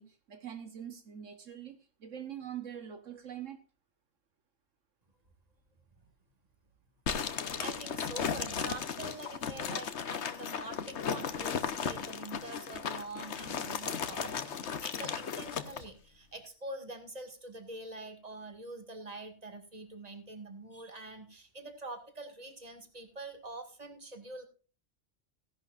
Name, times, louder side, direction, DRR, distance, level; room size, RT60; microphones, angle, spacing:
voice 1, 0.0-3.6, right 9 dB, 75° right, 1.5 m, -44 dB
sound 1, 7.1-15.8, left 7 dB, 65° left, 1.2 m, -36 dB
voice 2, 7.1-24.5, right 2 dB, 30° right, 2.1 m, -45 dB
16.5 x 11.0 x 2.5 m
omnidirectional pair, 1.3 m